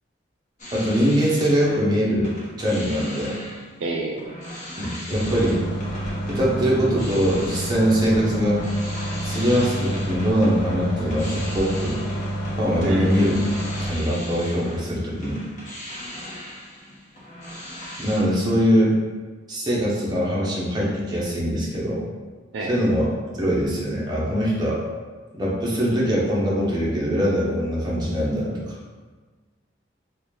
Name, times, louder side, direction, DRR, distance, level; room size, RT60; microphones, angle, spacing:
sound 1, 0.6-1.9 2.2-18.2, left 1 dB, 40° left, 0.9 m, -39 dB
voice 1, 0.7-2.3 2.6-3.4 4.8-5.6 6.3-8.7 9.2-12.0 12.6-13.4 13.9-15.5 18.0-18.9 19.5-22.1 22.6-23.1 23.4-24.8 25.3-28.7, equal, 20° right, -5 dB, 0.8 m, -22 dB
voice 2, 3.8-4.4 12.8-13.2 22.5-22.7, right 2 dB, 70° right, 0 dB, 0.4 m, -28 dB
sound 2, 5.1-13.9, right 1 dB, 75° left, 0.8 m, -29 dB
3.9 x 2.4 x 3.2 m, 1.4 s
head